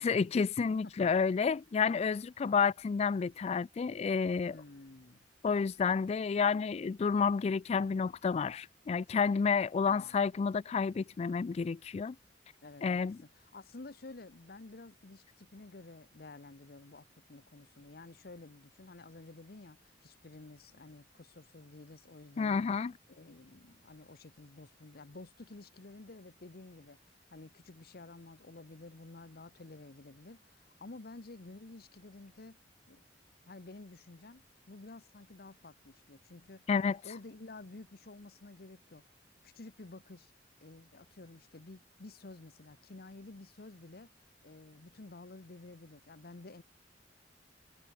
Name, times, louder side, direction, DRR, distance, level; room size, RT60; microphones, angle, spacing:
voice 1, 0.0-4.6 5.4-12.2 12.8-13.2 22.4-22.9 36.7-37.0, left 5 dB, 35° left, 0.3 m, -30 dB
voice 2, 0.8-1.2 4.5-5.2 9.9-10.3 12.6-22.7 23.1-32.6 32.9-33.0 33.4-36.7 37.0-39.0 39.4-40.3 40.6-44.1 44.4-46.6, left 2 dB, 60° left, 1.0 m, -51 dB
head